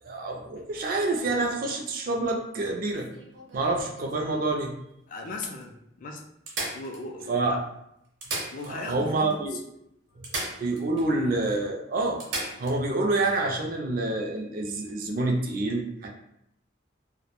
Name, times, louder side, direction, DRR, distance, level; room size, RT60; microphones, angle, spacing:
voice 1, 0.0-3.1 3.5-4.7 7.3-7.5 8.7-9.6 10.2-10.3 10.6-12.2 12.6-16.1, right 2 dB, 50° right, 1 dB, 0.3 m, -27 dB
sound 1, 2.9-4.6 5.2-5.3 5.6-5.7 6.5-7.5 8.0-9.1 9.3-9.4 10.2-11.1 11.4-11.5 12.2-12.8 14.7-14.9, right 2 dB, 80° right, 0.7 m, -36 dB
voice 2, 5.1-6.3 6.7-7.6 8.5-9.6, left 2 dB, 45° left, 2 dB, 0.3 m, -38 dB
2.2 x 2.1 x 2.8 m, 0.79 s
head